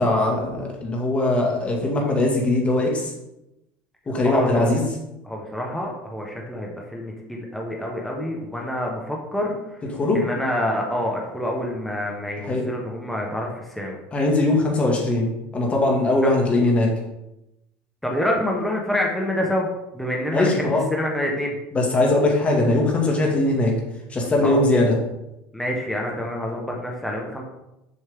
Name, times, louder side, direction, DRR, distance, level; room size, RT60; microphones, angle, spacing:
voice 1, 0.0-3.1 4.1-4.9 9.9-10.2 12.4-12.6 14.1-16.9 20.3-20.8 21.7-23.8 24.1-25.0, left 2 dB, 20° left, -1 dB, 2.1 m, -20 dB
voice 2, 4.2-4.7 5.3-9.5 10.1-14.0 18.0-19.7 19.9-21.5 24.4-24.6 25.5-27.4, equal, 5° left, -1 dB, 1.2 m, -27 dB
6.9 x 6.2 x 3.7 m, 0.91 s
supercardioid pair, 125°, 6 cm